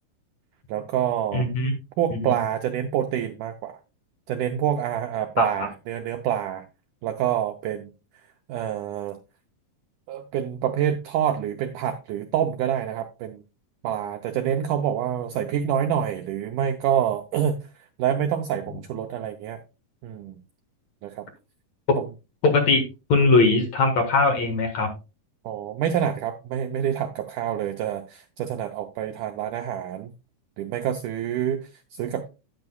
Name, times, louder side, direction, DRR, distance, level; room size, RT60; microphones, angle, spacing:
voice 1, 0.7-1.5 2.0-3.8 4.3-6.6 7.0-7.9 8.5-9.2 10.1-13.4 13.8-17.6 18.0-19.6 20.0-20.4 21.0-21.3 25.5-30.1 30.6-32.3, right 10 dB, 80° right, 7 dB, 1.8 m, -27 dB
voice 2, 1.3-1.7 2.1-2.4 5.4-5.5 22.4-22.8 23.1-24.9, left 3 dB, 55° left, 5 dB, 2.4 m, -20 dB
10.5 x 9.5 x 2.3 m, 0.29 s
omnidirectional pair, 4.3 m